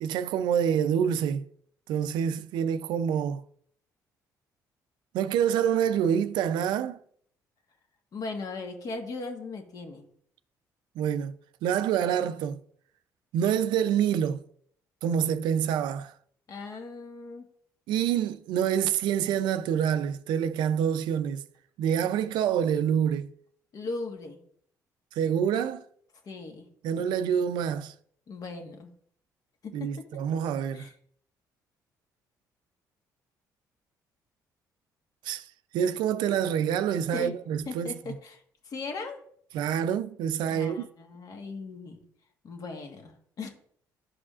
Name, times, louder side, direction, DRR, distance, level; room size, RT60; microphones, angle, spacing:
voice 1, 0.0-1.4 1.9-3.4 5.1-7.0 11.0-11.3 11.6-12.6 13.3-14.4 15.0-16.1 17.9-21.4 21.8-23.3 25.2-25.8 26.8-27.9 29.7-30.9 35.2-35.4 35.7-37.9 39.5-40.9, right 8 dB, 85° right, 0.5 m, -27 dB
voice 2, 8.1-10.0 16.5-17.4 23.7-24.4 26.2-26.7 28.3-28.9 29.6-30.1 30.7-30.9 37.1-37.3 37.6-39.2 40.5-42.0 42.4-43.5, left 3 dB, 55° left, 1.4 m, -38 dB
11.5 x 4.9 x 2.4 m
cardioid pair, 90°, 7 cm